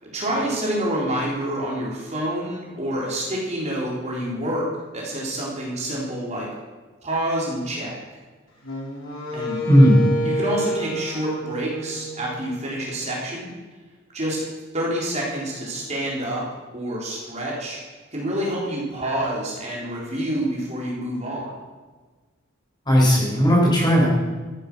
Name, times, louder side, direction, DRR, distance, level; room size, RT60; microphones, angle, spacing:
voice 1, 0.0-4.7 4.9-6.5 7.0-8.0 9.3-9.6 10.2-13.5 14.1-14.4 14.7-16.4 16.7-17.8 18.1-21.5, right 1 dB, 35° right, -4 dB, 3.9 m, -27 dB
Wind instrument woodwind instrument, 8.6-12.8, equal, 75° left, 3.6 m, -29 dB
voice 2, 9.7-10.0 22.9-24.1, equal, 20° left, -3 dB, 4.4 m, -15 dB
14.0 x 10.5 x 6.2 m, 1.3 s
head